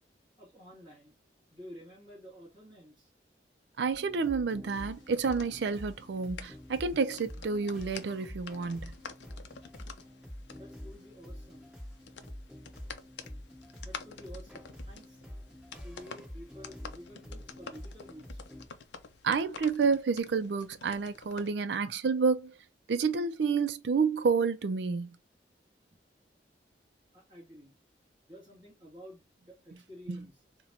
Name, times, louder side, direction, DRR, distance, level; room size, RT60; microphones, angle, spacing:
voice 1, 0.4-1.1 1.5-3.1 10.5-11.7 13.8-15.2 15.8-18.4 27.1-27.8 28.3-30.4, equal, 25° right, 2.2 m, -51 dB
voice 2, 3.8-8.9 19.2-22.6 22.9-25.2 30.1-30.3, right 5 dB, 70° right, 0.4 m, -29 dB
sound 1, 3.9-18.7, equal, 5° right, 1.6 m, -47 dB
sound 2, 4.6-21.5, left 5 dB, 75° left, 0.5 m, -49 dB
3.9 x 2.2 x 2.8 m
head